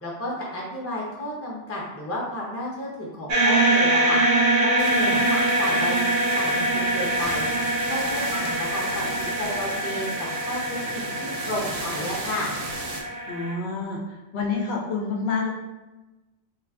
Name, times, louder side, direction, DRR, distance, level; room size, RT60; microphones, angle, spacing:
voice 1, 0.0-4.2 4.6-6.1 6.3-7.5 7.8-12.5, left 1 dB, 15° left, -4 dB, 0.6 m, -32 dB
sound 1, 3.3-13.5, right 1 dB, 45° right, 0.5 m, -24 dB
sound 2, 4.8-13.0, right 3 dB, 90° right, 0.9 m, -36 dB
voice 2, 13.3-15.5, left 4 dB, 65° left, -2 dB, 0.8 m, -28 dB
3.2 x 2.4 x 3.4 m, 1.1 s
omnidirectional pair, 1.2 m